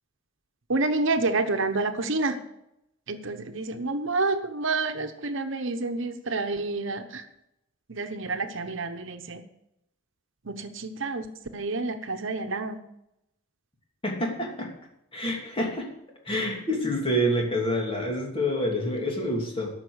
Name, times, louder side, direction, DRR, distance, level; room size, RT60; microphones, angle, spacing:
voice 1, 0.7-2.4 3.1-7.3 7.9-9.4 10.4-11.3 11.5-12.8, right 3 dB, 70° right, 7 dB, 1.0 m, -28 dB
voice 2, 14.0-14.7 15.1-15.9 16.2-19.7, equal, 30° left, 0 dB, 2.9 m, -27 dB
13.0 x 6.2 x 8.0 m, 0.84 s
head